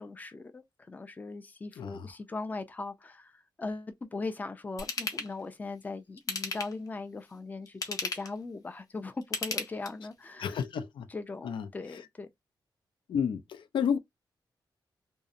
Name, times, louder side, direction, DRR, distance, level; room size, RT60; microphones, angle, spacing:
voice 1, 0.0-10.6 11.1-12.3, left 3 dB, 20° left, 0.4 m, -39 dB
voice 2, 1.8-2.1 10.4-11.1 11.4-11.7 11.9-12.0 13.1-14.0, left 7 dB, 85° left, 0.4 m, -31 dB
Ratchet pawl / Tools, 4.8-5.3 6.2-6.9 7.7-8.4 9.2-10.1 10.6-10.7, left 4 dB, 50° left, 0.7 m, -34 dB
2.6 x 2.0 x 2.4 m
wide cardioid pair, 130°, 8 cm